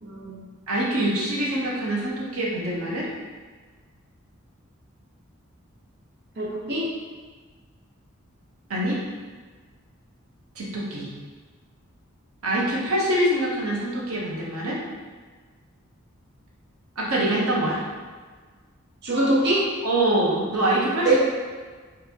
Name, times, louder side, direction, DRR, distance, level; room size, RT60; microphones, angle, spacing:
voice 1, 0.0-0.4 6.4-6.9 19.0-19.7 21.0-21.2, right 2 dB, 50° right, -6 dB, 0.8 m, -23 dB
voice 2, 0.7-3.1 8.7-9.0 10.6-11.1 12.4-14.8 17.0-17.8 19.8-21.1, right 1 dB, 85° right, -4 dB, 0.9 m, -24 dB
3.9 x 3.3 x 2.9 m, 1.5 s
head